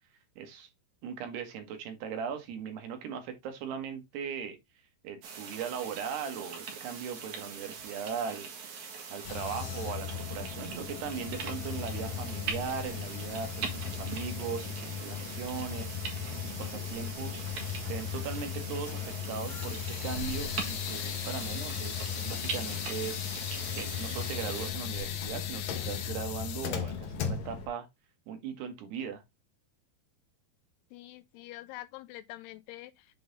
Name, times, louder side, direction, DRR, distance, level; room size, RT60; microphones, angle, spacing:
voice 1, 0.4-0.7 1.0-4.6 5.0-8.5 9.1-23.5 23.7-27.9 28.3-29.2, right 7 dB, 75° right, 3.4 m, -39 dB
sound 1, 5.2-24.7, right 6 dB, 55° right, 2.5 m, -42 dB
sound 2, 9.2-27.7, left 8 dB, 65° left, 2.4 m, -36 dB
voice 2, 30.9-33.2, left 16 dB, 80° left, 2.4 m, -46 dB
7.6 x 3.9 x 3.9 m
omnidirectional pair, 4.9 m